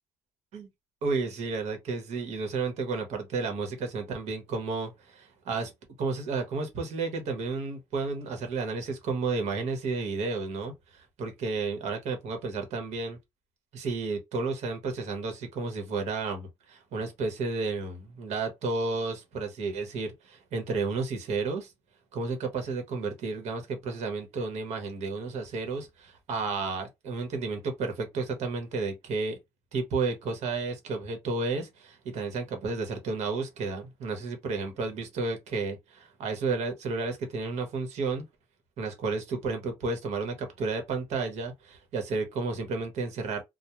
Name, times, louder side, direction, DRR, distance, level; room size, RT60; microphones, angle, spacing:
voice 1, 1.0-5.7 6.0-13.2 13.7-21.7 22.1-29.4 29.7-38.2 38.8-43.4, right 4 dB, 75° right, 1.0 m, -32 dB
2.3 x 2.1 x 2.9 m
cardioid pair, 115°, 12 cm